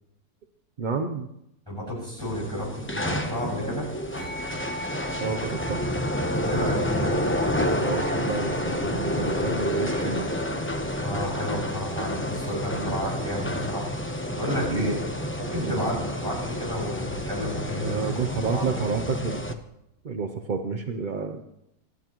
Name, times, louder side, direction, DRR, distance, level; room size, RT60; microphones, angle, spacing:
voice 1, 0.8-1.3 5.2-5.8 7.8-10.3 12.7-12.9 14.7-15.0 15.6-15.8 17.8-19.4 20.0-21.4, right 5 dB, 40° right, 5 dB, 0.7 m, -30 dB
voice 2, 1.7-3.9 6.4-7.2 11.0-13.9 14.4-15.0 15.4-18.1 18.5-18.6, equal, 15° right, -5 dB, 6.6 m, -31 dB
sound 1, 2.2-19.5, left 1 dB, 10° left, 0.7 m, -29 dB
sound 2, 4.2-13.8, equal, 70° right, 3.5 m, -43 dB
27.5 x 13.0 x 3.1 m, 0.83 s
omnidirectional pair, 1.7 m